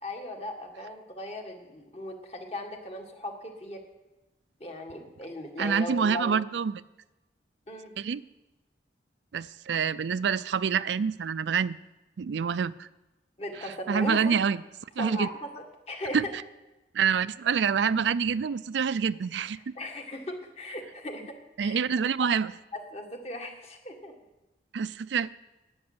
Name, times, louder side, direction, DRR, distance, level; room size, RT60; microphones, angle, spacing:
voice 1, 0.0-3.8 4.6-6.3 7.7-7.9 13.4-14.4 15.0-16.3 19.8-21.8 22.9-24.1, left 1 dB, 35° left, 3 dB, 1.8 m, -38 dB
voice 2, 5.6-6.8 8.0-8.2 9.3-11.8 12.2-12.9 13.6-14.6 15.0-15.3 16.1-16.2 16.9-19.7 21.6-22.5 24.7-25.3, right 6 dB, 80° right, 16 dB, 0.4 m, -27 dB
10.5 x 8.7 x 9.6 m, 1.0 s
head